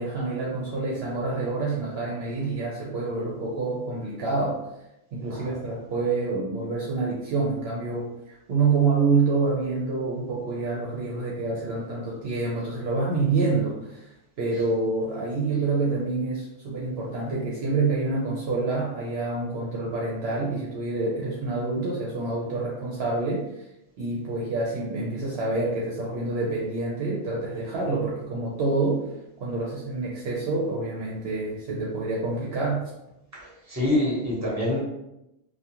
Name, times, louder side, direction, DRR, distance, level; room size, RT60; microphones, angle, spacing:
voice 1, 0.0-4.6 5.1-23.6 24.0-29.0 29.4-32.8, right 3 dB, 65° right, -5 dB, 0.7 m, -27 dB
voice 2, 33.3-34.8, left 1 dB, 15° right, -6 dB, 0.9 m, -26 dB
2.3 x 2.2 x 2.8 m, 0.88 s
omnidirectional pair, 1.2 m